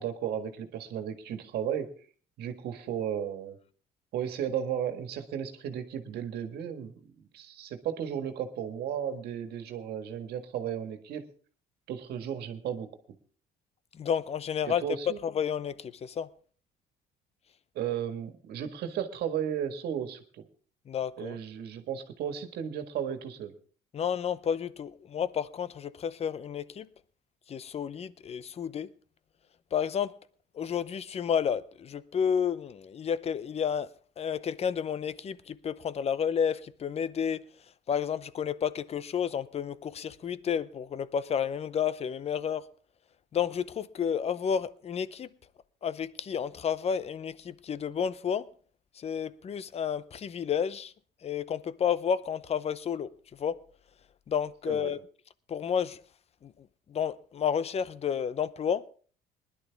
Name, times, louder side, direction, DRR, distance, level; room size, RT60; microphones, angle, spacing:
voice 1, 0.0-1.9 2.4-3.6 4.1-11.3 11.9-12.9 14.6-15.2 17.8-20.4 21.2-23.5 54.7-54.9, right 9 dB, 70° right, 1.7 m, -34 dB
voice 2, 14.0-14.8 15.2-16.3 20.9-21.4 23.9-26.9 27.5-28.9 29.7-30.2 30.5-33.9 34.2-37.4 37.9-42.6 43.3-45.3 45.8-48.5 49.0-50.9 51.2-53.1 53.4-53.6 54.3-55.0 55.5-56.0 56.4-56.5 56.9-58.9, left 7 dB, 40° left, 0.7 m, -31 dB
20.0 x 11.5 x 3.5 m
cardioid pair, 110°, 17 cm